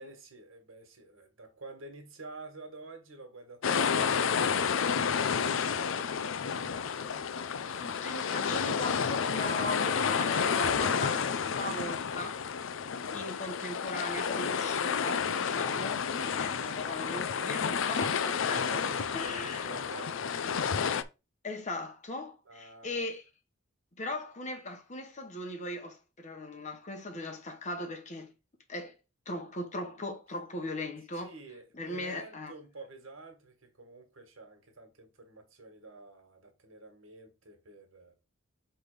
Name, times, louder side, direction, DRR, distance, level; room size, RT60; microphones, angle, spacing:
voice 1, 0.0-6.2 6.9-7.4 7.6-8.1 18.5-20.7 22.5-23.1 31.2-38.1, right 3 dB, 70° right, 1.7 m, -49 dB
sound 1, 3.6-21.0, left 6 dB, 65° left, 0.5 m, -30 dB
voice 2, 7.8-12.4 13.1-18.8 19.1-19.7 21.4-23.2 24.0-28.3 28.7-28.9 29.3-31.3 31.7-32.5, left 1 dB, 35° left, 1.0 m, -38 dB
6.0 x 3.4 x 5.0 m
head